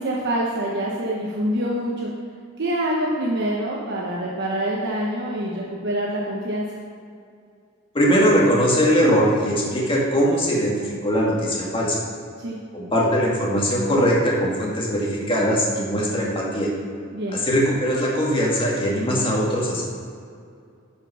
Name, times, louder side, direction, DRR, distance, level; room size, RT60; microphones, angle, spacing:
voice 1, 0.0-2.1 2.6-6.8 12.4-12.6 17.1-17.4, right 1 dB, 55° right, -3 dB, 1.0 m, -26 dB
voice 2, 7.9-12.0 12.7-16.7 17.3-19.8, equal, 25° left, -4 dB, 2.0 m, -21 dB
10.5 x 5.5 x 5.6 m, 2.3 s
head